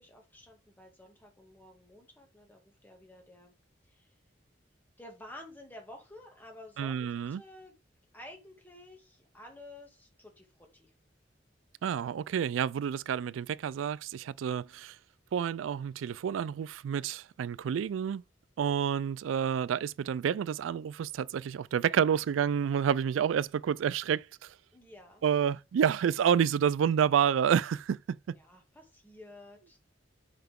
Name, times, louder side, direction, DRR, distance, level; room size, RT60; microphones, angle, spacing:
voice 1, 0.0-3.5 3.9-4.1 5.0-7.8 8.1-10.9 24.7-25.2 28.4-29.8, left 1 dB, 10° left, 2.1 m, -51 dB
voice 2, 6.8-7.4 11.8-15.0 15.3-18.2 18.6-24.5 25.2-28.3, right 8 dB, 90° right, 0.3 m, -29 dB
5.7 x 5.5 x 3.6 m
head